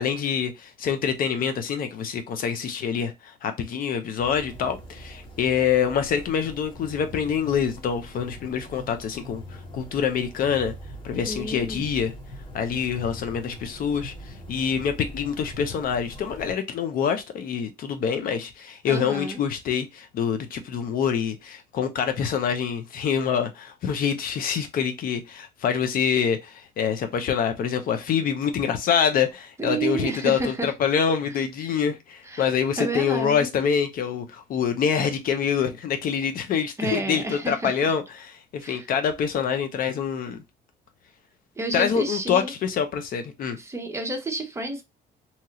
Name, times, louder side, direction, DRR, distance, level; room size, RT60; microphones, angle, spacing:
voice 1, 0.0-10.7 11.0-12.1 12.5-40.4 41.7-43.6, left 7 dB, 55° left, 0.6 m, -26 dB
sound 1, 4.2-16.5, equal, 30° left, 1.2 m, -42 dB
voice 2, 11.3-11.8 18.9-19.4 29.6-30.7 32.3-33.5 36.8-37.7 38.6-38.9 41.6-42.5 43.6-44.8, right 2 dB, 15° right, 0.7 m, -30 dB
2.9 x 2.3 x 2.8 m
cardioid pair, 110°, 17 cm